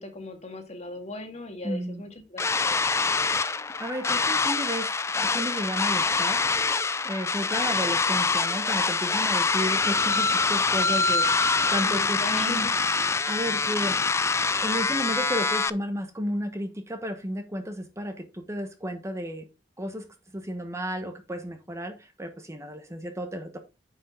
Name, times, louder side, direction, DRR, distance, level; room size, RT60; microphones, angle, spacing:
voice 1, 0.0-2.8 11.8-12.7 13.2-13.4, left 2 dB, 40° left, 1.9 m, -38 dB
voice 2, 1.6-2.0 3.4-6.4 7.0-12.7 13.2-14.0 14.6-19.5 19.8-20.0 20.3-23.6, equal, 15° right, 1.1 m, -33 dB
sound 1, 2.4-15.7, left 4 dB, 15° left, 0.3 m, -25 dB
9.4 x 5.4 x 3.7 m
head